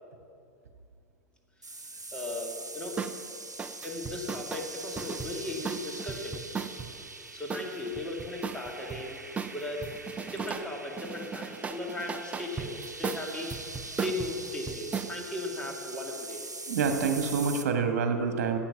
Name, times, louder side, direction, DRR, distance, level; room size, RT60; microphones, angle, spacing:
voice 1, 1.6-3.0 3.8-6.4 7.3-9.2 9.5-9.9 10.3-13.5 14.0-16.5, left 2 dB, 10° left, 0 dB, 2.3 m, -37 dB
sound 1, 1.6-17.6, right 3 dB, 85° right, 0.8 m, -43 dB
sound 2, 3.0-3.2 3.6-6.9 7.5-9.0 9.4-10.7 11.0-15.1, right 6 dB, 15° right, 0.6 m, -36 dB
voice 2, 16.7-18.6, right 5 dB, 60° right, 5 dB, 1.6 m, -27 dB
15.5 x 9.1 x 5.9 m, 2.5 s
figure-of-eight pair, 95°, 9 cm